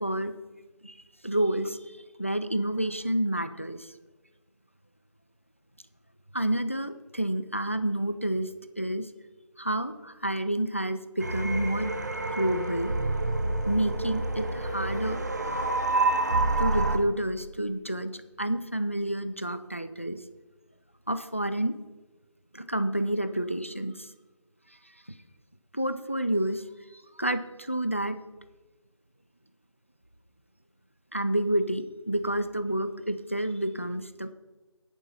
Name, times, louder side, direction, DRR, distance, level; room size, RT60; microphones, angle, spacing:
voice 1, 0.0-0.3 0.8-1.0 1.2-3.9 6.3-8.5 8.8-9.1 9.6-11.9 12.3-12.9 13.7-15.2 16.6-20.2 21.1-21.7 22.5-24.1 25.1-25.2 25.7-26.6 27.2-28.2 31.1-34.3, right 1 dB, 25° left, 12 dB, 0.4 m, -29 dB
sound 1, 11.2-17.0, right 2 dB, 35° right, 0.8 m, -28 dB
10.5 x 9.2 x 4.1 m, 1.2 s
figure-of-eight pair, 175°, 16 cm